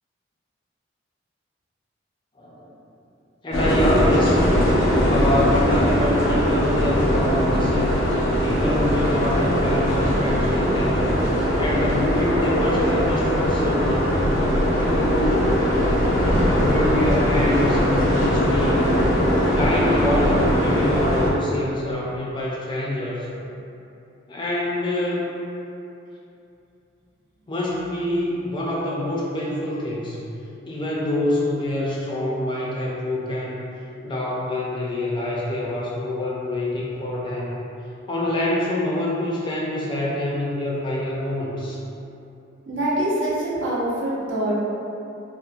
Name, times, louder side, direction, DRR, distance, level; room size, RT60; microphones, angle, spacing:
voice 1, 2.4-2.7 3.4-4.4 5.0-7.9 8.4-11.1 11.6-14.1 14.8-15.6 16.5-18.8 19.3-23.3 24.3-25.2 27.5-30.2 30.7-33.6 34.0-37.6 38.1-41.8, left 1 dB, 25° left, -5 dB, 0.3 m, -26 dB
sound 1, 3.5-21.3, equal, 90° left, 0.5 m, -20 dB
voice 2, 42.7-44.5, right 1 dB, 80° right, -7 dB, 0.6 m, -24 dB
2.8 x 2.0 x 2.4 m, 2.8 s
head